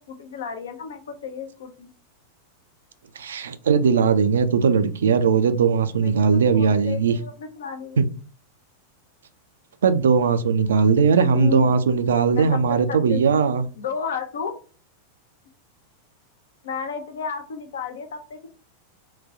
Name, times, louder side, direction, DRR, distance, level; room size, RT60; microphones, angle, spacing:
voice 1, 0.1-1.9 5.9-8.0 11.2-11.8 12.3-12.6 12.9-13.2 13.7-14.6 16.6-18.5, left 6 dB, 60° left, 0.6 m, -33 dB
voice 2, 3.2-7.1 8.0-8.1 9.8-13.6, right 5 dB, 65° right, 0.3 m, -19 dB
3.8 x 2.3 x 2.6 m
figure-of-eight pair, 90°, 0 cm